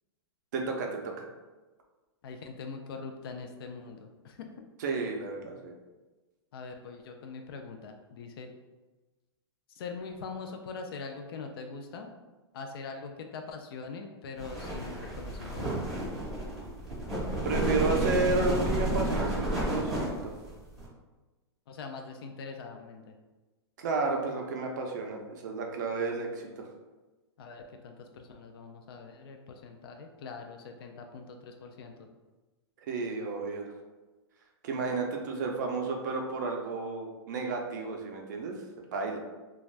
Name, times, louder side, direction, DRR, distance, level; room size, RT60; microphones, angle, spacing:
voice 1, 0.5-1.3 4.8-5.7 17.4-20.3 23.8-26.7 32.9-33.7 34.6-38.6 38.9-39.2, right 4 dB, 45° right, 2 dB, 0.4 m, -32 dB
voice 2, 2.2-4.5 6.5-8.5 9.8-12.1 12.5-15.8 21.7-23.1 27.4-32.1, left 4 dB, 60° left, 4 dB, 0.4 m, -42 dB
sound 1, 14.4-20.9, right 1 dB, 5° right, 0.6 m, -31 dB
2.5 x 2.3 x 3.2 m, 1.2 s
supercardioid pair, 170°, 14 cm